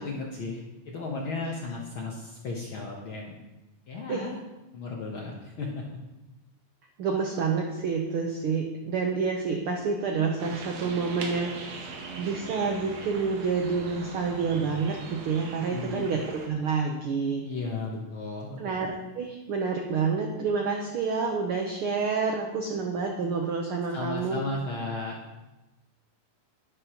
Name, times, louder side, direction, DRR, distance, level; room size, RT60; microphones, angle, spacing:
voice 1, 0.0-3.4 3.9-4.4 4.7-5.8 15.7-16.1 17.4-18.7 23.9-25.2, left 3 dB, 65° left, -1 dB, 1.3 m, -35 dB
voice 2, 7.0-11.8 12.2-17.4 18.6-24.4, right 5 dB, 85° right, 1 dB, 1.2 m, -28 dB
sound 1, 10.4-16.5, right 4 dB, 65° right, 2.1 m, -40 dB
11.0 x 10.5 x 3.0 m, 1.0 s
omnidirectional pair, 3.6 m